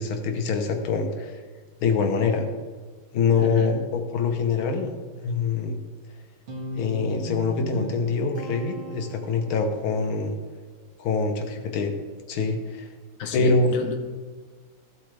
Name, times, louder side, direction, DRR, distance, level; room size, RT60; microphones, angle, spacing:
voice 1, 0.0-1.4 1.8-2.5 3.1-5.8 6.7-10.3 11.0-11.9 12.3-12.9 13.3-13.7, left 4 dB, 85° left, 5 dB, 1.9 m, -25 dB
voice 2, 3.4-3.7 13.2-13.9, left 4 dB, 45° left, 4 dB, 1.3 m, -30 dB
Guitar, 6.5-9.7, left 1 dB, 75° right, 2.7 m, -36 dB
14.5 x 7.8 x 3.3 m, 1.5 s
omnidirectional pair, 2.2 m